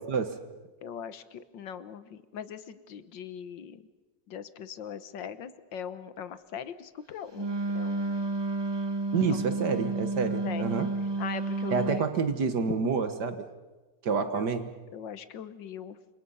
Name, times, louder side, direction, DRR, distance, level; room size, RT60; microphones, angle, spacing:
voice 1, 0.1-0.4 9.1-10.9 11.7-13.5 14.0-14.7, right 5 dB, 65° right, 9 dB, 1.9 m, -28 dB
voice 2, 0.8-3.9 4.3-8.3 9.3-9.9 10.2-10.9 11.2-12.1 14.2-14.5 14.9-16.0, left 8 dB, 80° left, 13 dB, 1.8 m, -41 dB
Wind instrument woodwind instrument, 7.3-12.1, right 2 dB, 35° right, 0.4 m, -31 dB
28.5 x 25.5 x 5.6 m, 1.2 s
omnidirectional pair, 2.0 m